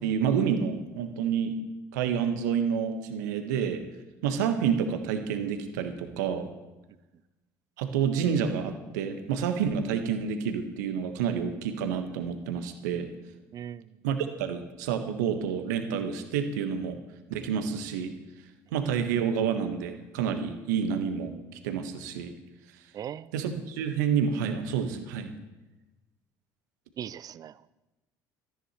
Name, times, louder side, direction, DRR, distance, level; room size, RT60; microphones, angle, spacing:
voice 1, 0.0-1.5 1.9-3.8 4.2-6.5 7.8-13.1 14.0-17.0 17.3-18.1 18.7-21.3 21.6-22.3 23.3-25.3, right 7 dB, 65° right, 7 dB, 1.4 m, -29 dB
voice 2, 13.5-13.9 22.9-23.3 27.0-27.7, right 9 dB, 35° right, 19 dB, 0.5 m, -39 dB
18.0 x 14.0 x 3.2 m, 1.1 s
figure-of-eight pair, 60°, 10 cm